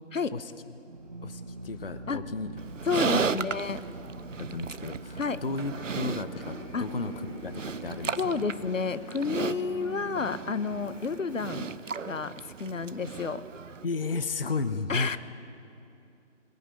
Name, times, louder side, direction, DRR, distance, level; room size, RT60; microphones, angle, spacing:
Drill, 0.8-9.4, right 2 dB, 35° right, 1.4 m, -44 dB
voice 1, 1.2-2.5 3.1-3.3 4.4-7.1 7.4-8.1 13.8-15.2, left 3 dB, 45° left, 12 dB, 0.8 m, -33 dB
Livestock farm animals working animals, 2.6-13.8, right 6 dB, 75° right, 0.8 m, -36 dB
voice 2, 2.8-3.8 5.2-5.4 6.7-6.9 8.2-11.7 12.1-13.4 14.9-15.2, left 5 dB, 80° left, 14 dB, 1.0 m, -30 dB
sound 1, 5.7-11.7, equal, 30° left, 2.4 m, -45 dB
20.5 x 16.5 x 9.7 m, 2.7 s
figure-of-eight pair, 175°, 38 cm